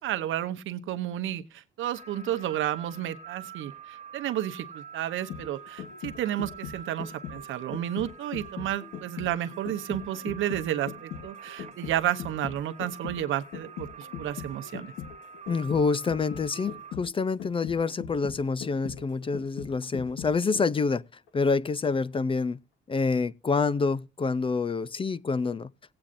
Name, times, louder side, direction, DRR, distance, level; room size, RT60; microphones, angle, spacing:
voice 1, 0.0-14.9, right 12 dB, 80° right, 0.9 m, -32 dB
sound 1, 1.9-17.0, right 6 dB, 35° right, 0.9 m, -46 dB
sound 2, 5.1-20.9 21.3-21.4, left 8 dB, 90° left, 1.2 m, -41 dB
voice 2, 15.5-21.0 21.3-22.6 22.9-25.7, left 4 dB, 25° left, 0.5 m, -27 dB
18.0 x 8.7 x 2.6 m
cardioid pair, 90°, 20 cm